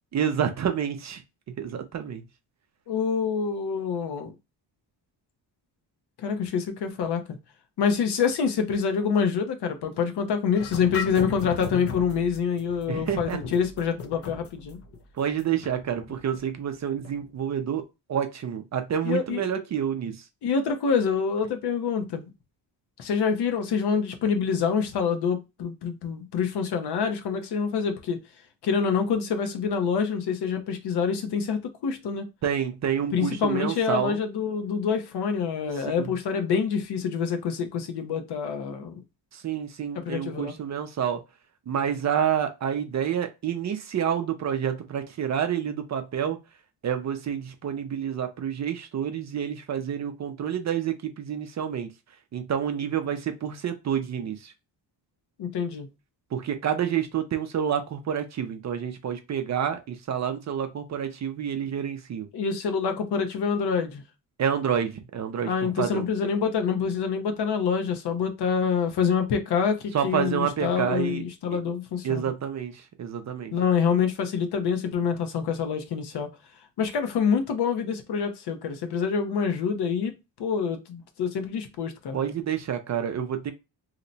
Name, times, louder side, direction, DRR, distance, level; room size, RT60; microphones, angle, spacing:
voice 1, 0.1-1.2 1.6-2.2 12.9-13.4 15.2-20.3 32.4-34.2 35.8-36.1 39.3-41.2 41.7-46.4 46.8-51.9 52.3-54.5 56.3-62.3 64.4-66.1 69.9-71.2 72.0-73.5 82.1-83.5, right 8 dB, 40° right, 0.5 m, -28 dB
voice 2, 2.9-4.3 6.2-7.4 7.8-14.8 19.0-19.4 20.4-22.3 23.0-28.2 28.6-32.3 33.1-39.0 39.9-40.5 55.4-55.9 62.3-64.0 65.5-72.3 73.5-76.3 76.8-80.1 80.4-82.2, left 6 dB, 65° left, 0.8 m, -26 dB
sound 1, 10.5-17.3, left 4 dB, 35° left, 0.4 m, -38 dB
2.8 x 2.1 x 3.9 m
cardioid pair, 140°, 43 cm